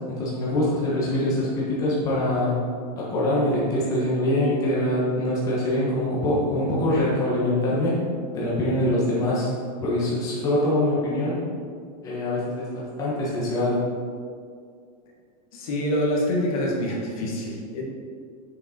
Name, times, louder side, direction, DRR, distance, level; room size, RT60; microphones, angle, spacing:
voice 1, 0.1-2.5 3.0-8.0 8.3-9.5 9.8-11.4 12.0-13.8, left 1 dB, 15° left, -7 dB, 1.3 m, -24 dB
voice 2, 15.5-17.8, left 1 dB, 55° left, -2 dB, 1.6 m, -26 dB
6.6 x 5.1 x 4.3 m, 2.2 s
supercardioid pair, 175°, 21 cm